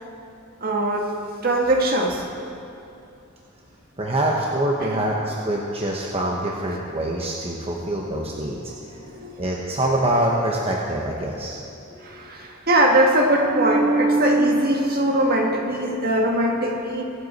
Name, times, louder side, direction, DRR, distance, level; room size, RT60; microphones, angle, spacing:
voice 1, 0.6-1.1 1.4-2.3 4.8-5.0 8.9-9.3 11.9-17.0, right 1 dB, 45° right, 1 dB, 1.6 m, -21 dB
voice 2, 4.0-8.6 9.4-11.6, right 1 dB, 30° right, -2 dB, 1.1 m, -24 dB
23.5 x 8.2 x 4.2 m, 2.6 s
head